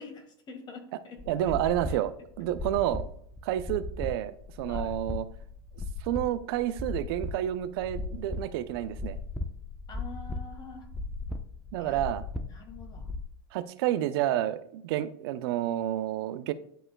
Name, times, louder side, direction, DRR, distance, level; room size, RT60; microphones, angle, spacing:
voice 1, 0.0-1.5 1.9-2.0 4.7-4.9 9.9-10.9 11.8-12.0 12.4-13.1, left 4 dB, 30° left, 4 dB, 1.7 m, -46 dB
sound 1, 1.2-13.2, left 2 dB, 5° left, 0.8 m, -37 dB
voice 2, 1.3-2.1 2.4-3.1 3.4-5.3 6.0-9.2 11.7-12.2 13.5-16.5, right 12 dB, 65° right, 13 dB, 0.6 m, -29 dB
11.5 x 4.3 x 2.3 m, 0.69 s
hypercardioid pair, 100°, 14 cm